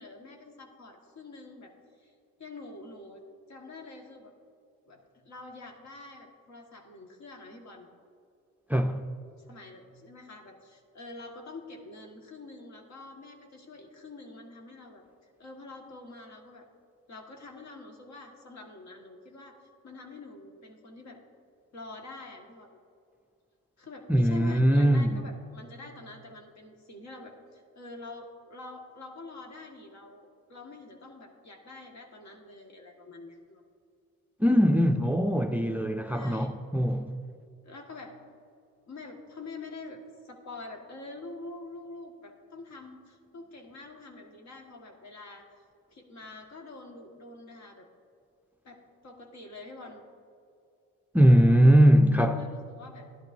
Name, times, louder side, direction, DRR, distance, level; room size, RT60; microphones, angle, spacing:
voice 1, 0.0-1.7 2.0-2.1 2.4-3.2 3.5-4.3 4.9-7.9 9.4-15.0 15.4-16.7 17.1-19.6 19.8-21.2 21.7-22.8 23.8-33.6 36.1-36.5 37.6-38.1 38.9-45.4 45.9-47.9 48.6-50.0 52.3-53.1, left 2 dB, 65° left, 1.6 m, -46 dB
voice 2, 8.7-9.0 24.1-25.2 34.4-37.1 51.1-52.4, equal, 5° right, 0.4 m, -21 dB
13.5 x 11.0 x 2.6 m
cardioid pair, 90°, 30 cm